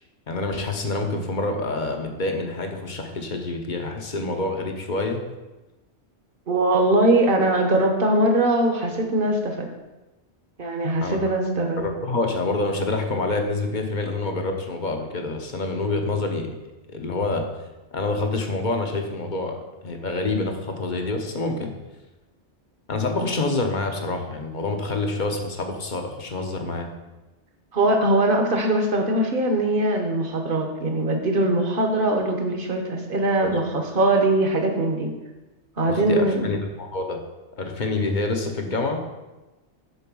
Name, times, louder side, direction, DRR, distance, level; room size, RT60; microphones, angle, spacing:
voice 1, 0.3-5.2 11.0-11.3 11.8-16.6 16.9-17.5 17.9-21.7 22.9-26.9 33.4-33.6 35.9-37.2 37.6-39.0, left 2 dB, 45° left, 4 dB, 1.0 m, -27 dB
voice 2, 6.5-9.7 10.6-11.8 27.7-35.1 35.8-36.5, right 1 dB, 50° right, 3 dB, 1.2 m, -21 dB
6.9 x 4.5 x 6.1 m, 1.1 s
omnidirectional pair, 1.2 m